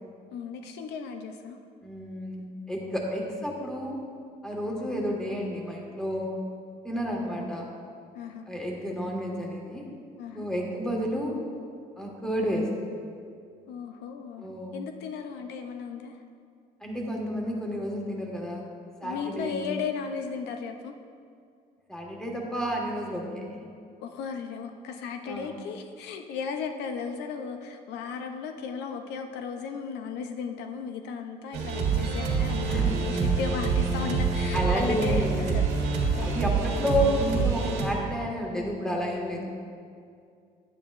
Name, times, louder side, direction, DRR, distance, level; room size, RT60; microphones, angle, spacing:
voice 1, 0.3-1.6 8.1-8.4 10.2-10.5 13.7-14.5 14.7-16.2 19.0-21.0 24.0-35.8 36.1-36.6, left 6 dB, 85° left, 6 dB, 0.6 m, -35 dB
voice 2, 1.8-4.0 4.4-6.4 6.8-7.7 8.5-9.8 10.3-11.4 12.0-12.9 14.4-14.8 16.8-18.6 19.0-19.6 21.9-23.7 25.3-25.5 32.6-32.8 33.2-33.3 34.5-35.6 36.2-39.5, equal, 5° left, -1 dB, 1.6 m, -31 dB
sound 1, 31.5-37.9, right 5 dB, 90° right, 1.8 m, -26 dB
10.5 x 9.0 x 2.5 m, 2.3 s
cardioid pair, 110°, 17 cm